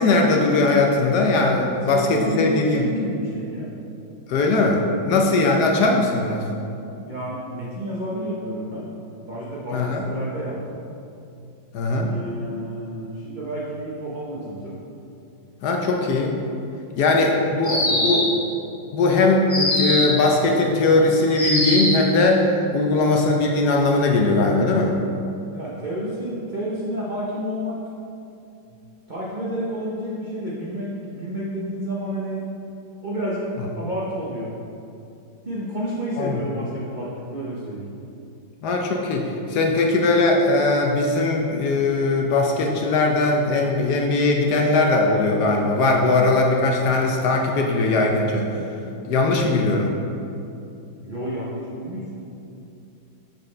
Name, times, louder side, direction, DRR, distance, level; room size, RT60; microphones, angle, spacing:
voice 1, 0.0-2.9 4.3-6.4 9.7-10.0 11.7-12.1 15.6-16.3 17.0-18.3 18.9-25.0 33.6-33.7 36.2-36.3 38.6-48.5 49.1-49.9, left 3 dB, 70° left, 1 dB, 1.0 m, -20 dB
voice 2, 1.7-3.7 5.0-5.2 7.1-8.9 9.2-10.8 12.0-14.7 17.1-18.2 25.5-27.8 28.7-28.8 29.1-32.4 33.0-33.4 33.7-34.5 35.4-37.9 45.8-46.1 51.0-52.2, right 1 dB, 90° right, -6 dB, 0.4 m, -30 dB
sound 1, 17.6-18.4 19.5-20.2 21.3-22.1, left 1 dB, 20° left, 0.9 m, -22 dB
6.6 x 6.2 x 3.2 m, 2.7 s
omnidirectional pair, 2.1 m